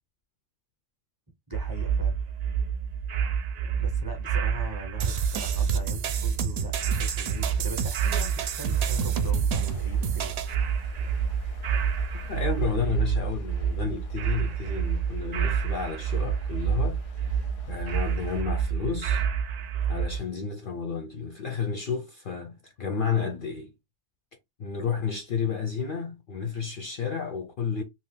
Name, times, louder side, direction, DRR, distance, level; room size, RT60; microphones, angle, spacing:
voice 1, 1.5-2.1 3.8-10.3, right 1 dB, 25° right, 0.6 m, -41 dB
sound 1, 1.5-20.2, right 7 dB, 85° right, 0.3 m, -28 dB
sound 2, 5.0-10.5, right 7 dB, 65° right, 0.7 m, -31 dB
sound 3, 9.5-18.4, left 7 dB, 85° left, 1.0 m, -45 dB
voice 2, 12.3-17.4 17.7-19.2 19.9-23.7 24.6-27.8, left 6 dB, 60° left, 0.6 m, -31 dB
2.7 x 2.3 x 3.6 m
omnidirectional pair, 1.3 m